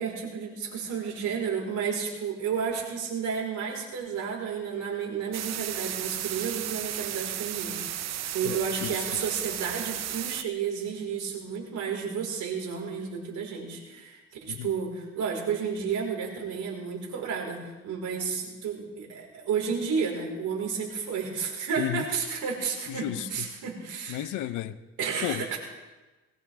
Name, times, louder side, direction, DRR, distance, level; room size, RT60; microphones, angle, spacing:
voice 1, 0.0-24.5 25.0-25.6, right 6 dB, 80° right, 0 dB, 4.8 m, -32 dB
sound 1, 5.3-10.4, right 11 dB, 60° right, 0.7 m, -34 dB
voice 2, 22.9-23.3 24.1-24.8 25.2-25.6, left 13 dB, 90° left, 13 dB, 0.7 m, -32 dB
21.0 x 18.5 x 3.6 m, 1.2 s
cardioid pair, 95°, 30 cm